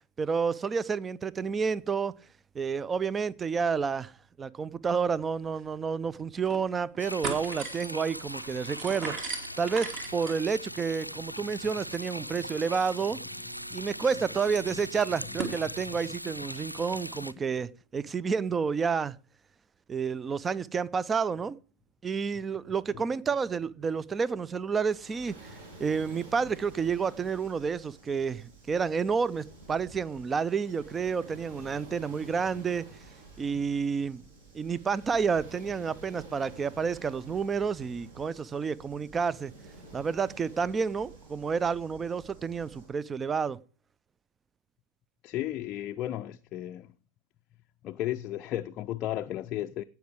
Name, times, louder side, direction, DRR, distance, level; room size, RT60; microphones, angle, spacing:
voice 1, 0.2-2.2 2.5-4.1 4.4-13.2 13.7-19.2 19.9-21.6 22.0-32.9 33.4-34.2 34.5-39.5 39.9-43.6, right 5 dB, 20° right, 0.5 m, -30 dB
sound 1, 5.2-5.3 5.6-5.7 6.2-6.6 6.9-15.6, right 4 dB, 35° right, 2.5 m, -41 dB
sound 2, 7.0-17.3, equal, 90° left, 0.5 m, -40 dB
Waves surf, 24.8-42.9, right 2 dB, 55° right, 6.2 m, -50 dB
voice 2, 45.2-46.9 47.8-49.8, left 13 dB, 35° left, 0.5 m, -34 dB
17.0 x 6.0 x 4.8 m
figure-of-eight pair, 90°, 0 cm